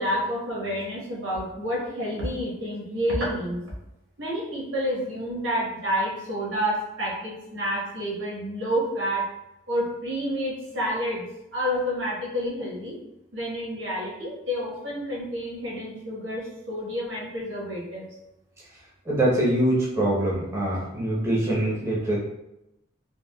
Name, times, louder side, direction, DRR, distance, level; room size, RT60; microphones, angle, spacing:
voice 1, 0.0-3.6 4.2-9.3 9.7-11.2 11.5-13.0 13.3-18.1, equal, 90° right, -5 dB, 1.2 m, -29 dB
voice 2, 19.1-22.2, right 1 dB, 15° right, -6 dB, 0.7 m, -24 dB
3.5 x 2.2 x 2.2 m, 0.87 s
head